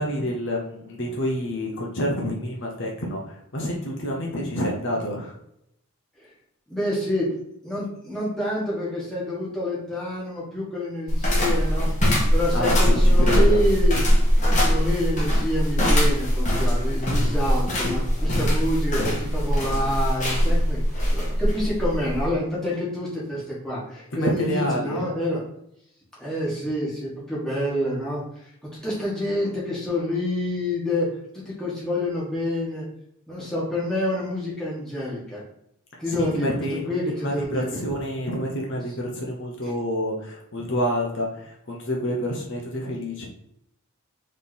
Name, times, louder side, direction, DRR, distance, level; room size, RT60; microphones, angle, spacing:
voice 1, 0.0-5.4 12.5-13.6 24.1-25.0 36.1-36.8 37.2-43.3, equal, 55° left, -1 dB, 0.8 m, -28 dB
voice 2, 6.7-7.3 7.6-11.9 12.3-14.1 14.4-20.8 21.1-25.4 26.2-28.2 28.6-31.1 31.3-32.8 33.3-35.4 36.0-36.5 36.9-37.8 39.6-39.7, left 1 dB, 5° left, -7 dB, 1.4 m, -27 dB
sound 1, 11.1-22.3, equal, 35° left, 1.2 m, -21 dB
3.7 x 3.2 x 4.1 m, 0.76 s
head